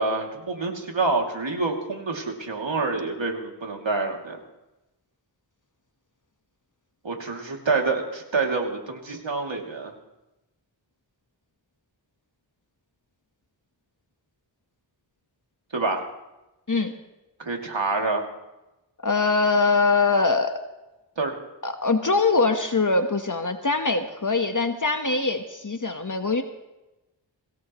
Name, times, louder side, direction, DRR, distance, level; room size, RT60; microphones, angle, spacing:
voice 1, 0.0-4.4 7.0-9.9 15.7-16.0 17.4-18.3 21.2-21.4, right 3 dB, 75° right, 1 dB, 2.9 m, -27 dB
voice 2, 19.0-20.5 21.6-26.4, left 3 dB, 40° left, 6 dB, 1.4 m, -22 dB
24.0 x 17.5 x 3.2 m, 0.99 s
wide cardioid pair, 40°, 45 cm